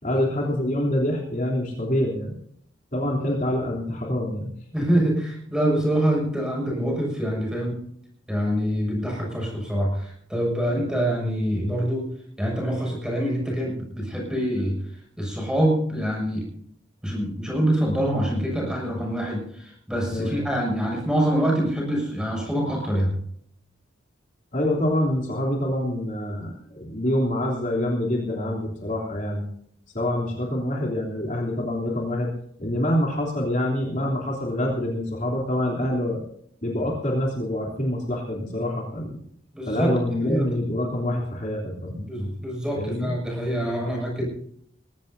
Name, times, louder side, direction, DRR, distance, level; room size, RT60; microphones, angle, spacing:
voice 1, 0.0-2.3 2.9-4.5 20.1-20.5 24.5-29.5 29.9-32.3 32.6-36.2 36.6-39.2 39.7-42.0 42.8-43.1, left 1 dB, 40° left, -2 dB, 3.3 m, -26 dB
voice 2, 4.7-7.8 8.3-12.1 12.4-14.7 15.2-16.4 17.0-23.1 39.5-39.9 40.2-40.5 42.0-44.2, right 1 dB, 5° right, -2 dB, 6.8 m, -25 dB
21.0 x 17.0 x 2.7 m, 0.66 s
head